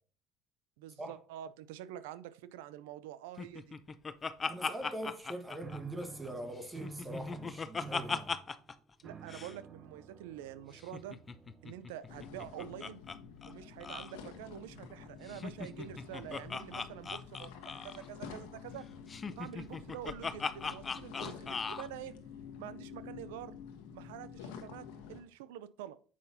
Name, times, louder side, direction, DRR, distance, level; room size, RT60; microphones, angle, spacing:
voice 1, 0.8-3.8 9.0-11.2 11.6-13.0 13.4-17.5 17.8-18.9 19.4-22.1 22.6-23.6 23.9-26.0, right 11 dB, 90° right, 0.5 m, -46 dB
Laughter, 3.4-6.3 6.6-8.7 9.0-9.1 9.3-9.5 10.8-13.2 13.4-13.5 13.8-14.1 15.3-18.1 19.1-21.9, left 5 dB, 25° left, 0.6 m, -39 dB
voice 2, 4.4-8.3, right 1 dB, 15° right, 1.2 m, -42 dB
sound 1, 5.6-12.1, right 3 dB, 35° right, 0.8 m, -49 dB
sound 2, 12.1-25.2, left 7 dB, 85° left, 1.2 m, -49 dB
7.4 x 5.6 x 2.7 m
supercardioid pair, 95°, 0 cm